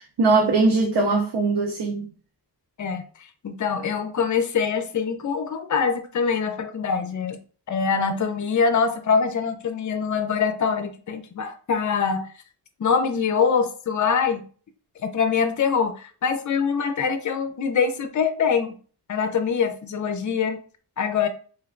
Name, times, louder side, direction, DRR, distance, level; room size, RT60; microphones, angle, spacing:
voice 1, 0.0-2.1, right 3 dB, 70° right, 0.7 m, -21 dB
voice 2, 3.4-7.4 7.7-12.3 12.8-14.4 15.0-18.8 19.1-20.6 21.0-21.3, left 6 dB, 45° left, 0.5 m, -24 dB
3.2 x 3.1 x 2.5 m
wide cardioid pair, 75°, 41 cm